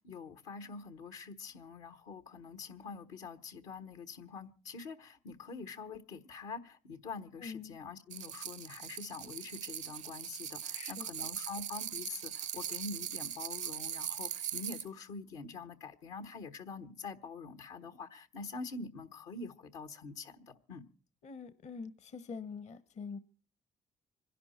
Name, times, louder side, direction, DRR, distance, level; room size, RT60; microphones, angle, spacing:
voice 1, 0.0-20.8, left 4 dB, 90° left, 1.3 m, -45 dB
voice 2, 7.4-7.8 10.7-11.1 21.2-23.2, left 5 dB, 65° left, 1.1 m, -44 dB
sound 1, 8.1-14.9, right 9 dB, 75° right, 0.7 m, -40 dB
25.5 x 11.0 x 4.3 m
supercardioid pair, 60°, 13 cm